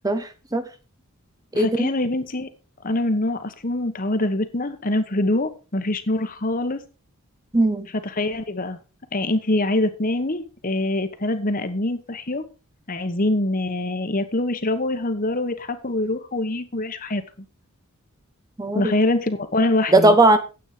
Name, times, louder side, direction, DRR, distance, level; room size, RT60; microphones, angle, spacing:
voice 1, 0.0-0.6 1.5-1.9 7.5-7.9 18.6-18.9 19.9-20.4, right 2 dB, 15° right, 9 dB, 0.8 m, -18 dB
voice 2, 1.5-2.5 2.8-6.8 8.1-8.8 9.1-12.4 12.9-17.2 18.7-20.4, left 2 dB, 40° left, 9 dB, 1.2 m, -24 dB
9.5 x 8.5 x 4.9 m, 0.33 s
head